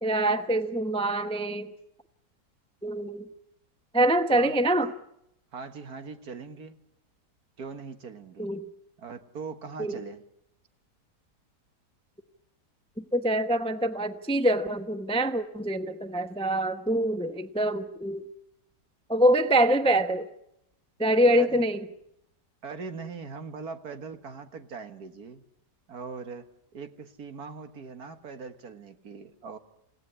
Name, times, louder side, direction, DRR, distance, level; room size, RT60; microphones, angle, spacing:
voice 1, 0.0-1.7 2.8-3.3 3.9-4.9 8.4-8.6 9.8-10.0 13.0-18.2 19.1-20.3 21.0-21.8, right 1 dB, 5° left, 9 dB, 0.6 m, -25 dB
voice 2, 5.5-6.8 7.6-8.5 9.0-10.2 21.3-21.7 22.6-25.4 25.9-29.6, right 5 dB, 60° right, 8 dB, 2.0 m, -41 dB
28.0 x 17.5 x 9.9 m, 0.81 s
omnidirectional pair, 1.8 m